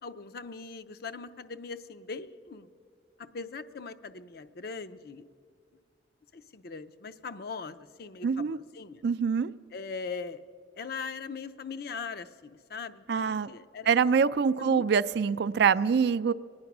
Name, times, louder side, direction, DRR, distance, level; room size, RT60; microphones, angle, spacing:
voice 1, 0.0-2.7 3.2-5.2 6.3-9.0 9.7-10.4 10.8-14.0 14.6-14.8, left 5 dB, 55° left, 0.5 m, -40 dB
voice 2, 8.2-8.6 9.0-9.5 13.1-13.5 13.9-16.3, right 6 dB, 60° right, 0.3 m, -25 dB
25.0 x 9.5 x 6.0 m
head